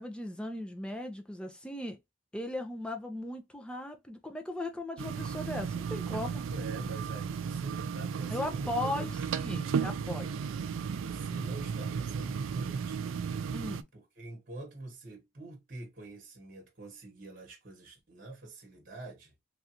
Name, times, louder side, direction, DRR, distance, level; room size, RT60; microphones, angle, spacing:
voice 1, 0.0-2.0 2.3-6.4 8.3-10.4 13.5-13.8, left 1 dB, 5° left, 0.5 m, -37 dB
sound 1, 5.0-13.8, right 6 dB, 90° right, 0.3 m, -34 dB
voice 2, 6.5-9.1 10.9-13.3 13.9-19.3, right 2 dB, 45° right, 1.1 m, -45 dB
3.3 x 2.5 x 2.8 m
head